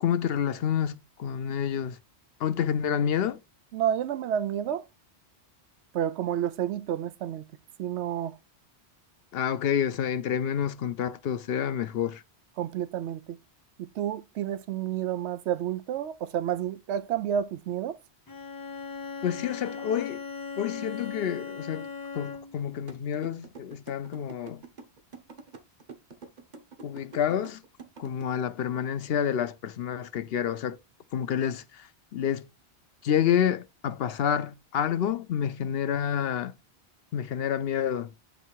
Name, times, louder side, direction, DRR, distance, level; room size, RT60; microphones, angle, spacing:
voice 1, 0.0-2.0 2.4-3.4 9.3-12.2 19.2-20.2 20.6-21.9 22.1-24.6 26.8-27.6 28.0-30.8 31.1-32.5 33.0-36.5 37.1-38.1, left 9 dB, 65° left, 0.8 m, -28 dB
voice 2, 3.7-4.9 5.9-7.4 7.8-8.4 12.6-13.4 13.8-18.0, right 10 dB, 85° right, 0.9 m, -30 dB
Bowed string instrument, 18.3-22.7, left 5 dB, 25° left, 0.5 m, -38 dB
sound 1, 22.9-28.2, right 4 dB, 45° right, 1.1 m, -45 dB
9.0 x 3.3 x 4.6 m
omnidirectional pair, 1.1 m